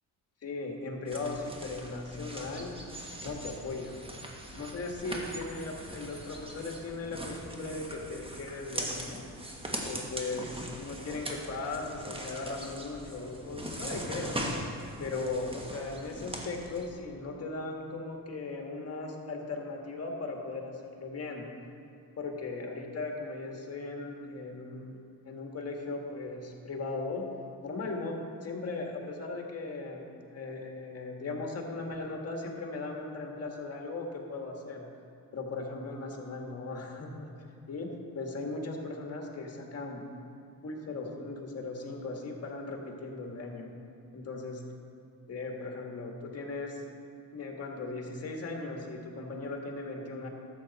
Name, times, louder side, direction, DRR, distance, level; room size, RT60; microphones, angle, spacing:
voice 1, 0.4-2.7 3.2-4.0 4.5-9.2 9.8-14.6 15.0-21.5 22.2-25.0 25.2-27.3 27.6-34.9 35.3-37.3 37.7-37.9 38.2-40.0 40.6-43.8 44.1-44.6 45.3-46.8 47.3-50.3, left 3 dB, 45° left, 1 dB, 1.6 m, -38 dB
sound 1, 1.1-16.9, right 1 dB, 15° right, 1.3 m, -41 dB
12.5 x 7.8 x 4.1 m, 2.6 s
cardioid pair, 100°, 34 cm